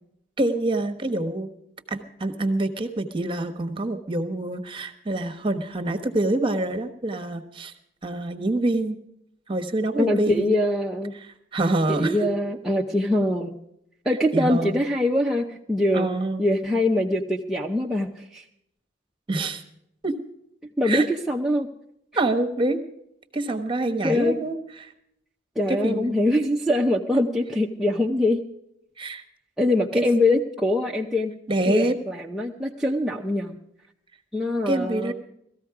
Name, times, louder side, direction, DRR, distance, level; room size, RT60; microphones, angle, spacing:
voice 1, 0.4-1.5 1.9-7.7 8.0-9.0 9.5-10.5 11.5-12.3 14.3-14.8 15.9-16.4 19.3-19.6 20.0-20.1 20.8-21.1 22.2-22.8 23.3-24.9 25.7-26.2 29.0-29.2 29.9-30.1 31.5-31.9 34.7-35.1, right 2 dB, 25° right, 6 dB, 1.2 m, -26 dB
voice 2, 10.0-11.1 11.9-13.6 14.1-16.1 16.4-18.4 20.8-21.7 24.0-24.4 25.6-28.4 29.6-31.3 31.7-33.6 34.3-35.1, left 1 dB, ahead, -3 dB, 0.7 m, -23 dB
18.0 x 14.0 x 4.8 m, 0.77 s
head